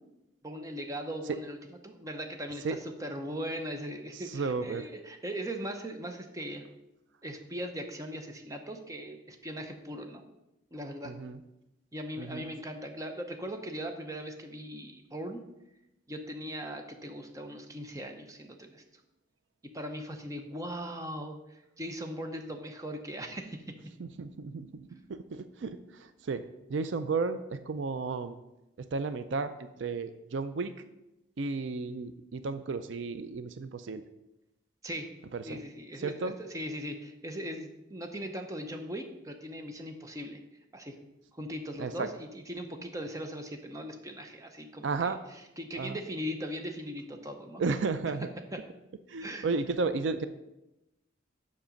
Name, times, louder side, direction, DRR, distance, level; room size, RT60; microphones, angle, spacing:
voice 1, 0.4-1.6 1.8-6.6 7.2-10.2 10.7-11.1 11.9-15.4 16.1-18.8 19.7-23.6 34.8-35.1 35.5-40.4 40.7-41.0 41.3-44.9 45.6-47.6 49.2-49.5, equal, 15° right, 4 dB, 0.7 m, -39 dB
voice 2, 4.1-4.8 11.0-11.4 12.2-12.5 24.0-26.4 26.7-28.4 28.8-30.7 31.4-34.0 35.3-35.6 36.0-36.3 41.8-42.1 44.8-45.2 45.8-46.0 47.6-48.3 49.1-50.3, right 4 dB, 70° right, 11 dB, 0.4 m, -33 dB
7.4 x 5.9 x 5.2 m, 0.94 s
head